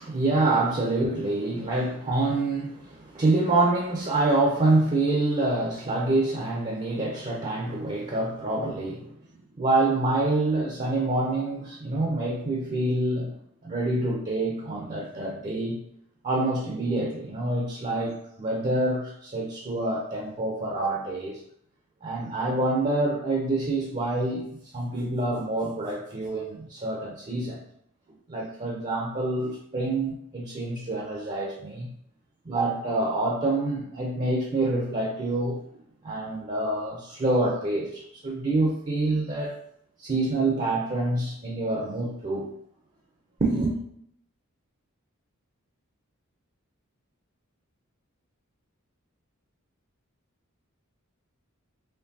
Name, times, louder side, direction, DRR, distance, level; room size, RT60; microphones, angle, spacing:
voice 1, 0.0-9.1 9.6-13.3 13.6-15.8 16.2-21.4 22.0-24.4 24.7-27.6 28.3-31.9 32.5-35.6 36.0-39.5 40.0-42.5 43.4-43.8, right 2 dB, 30° right, -2 dB, 0.5 m, -26 dB
4.4 x 3.2 x 2.7 m, 0.72 s
head